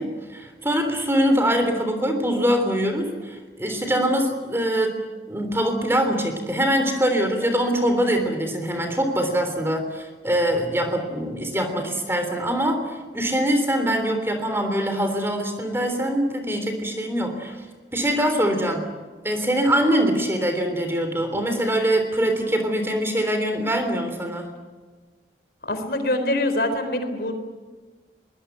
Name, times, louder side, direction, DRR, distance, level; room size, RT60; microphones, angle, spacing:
voice 1, 0.0-4.9 5.3-17.7 17.9-18.8 19.2-24.5, equal, 15° right, 6 dB, 3.4 m, -23 dB
voice 2, 25.6-27.3, left 1 dB, 60° left, 7 dB, 4.0 m, -24 dB
23.0 x 19.5 x 9.3 m, 1.4 s
head